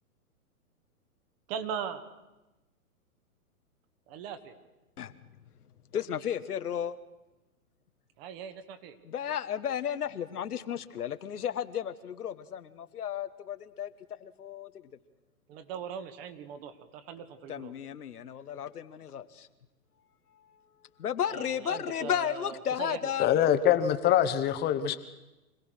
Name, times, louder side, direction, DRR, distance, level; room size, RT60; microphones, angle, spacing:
voice 1, 1.5-2.0 4.1-4.5 8.2-9.0 15.5-17.7 21.3-23.0, right 8 dB, 40° right, 9 dB, 1.9 m, -39 dB
voice 2, 5.9-7.0 9.0-13.9 14.2-14.7 17.5-19.5 21.0-23.3, left 9 dB, 80° left, 11 dB, 1.3 m, -33 dB
voice 3, 23.2-25.0, left 10 dB, 20° left, 11 dB, 1.0 m, -24 dB
25.0 x 17.0 x 6.4 m, 1.0 s
hypercardioid pair, 130°, 45 cm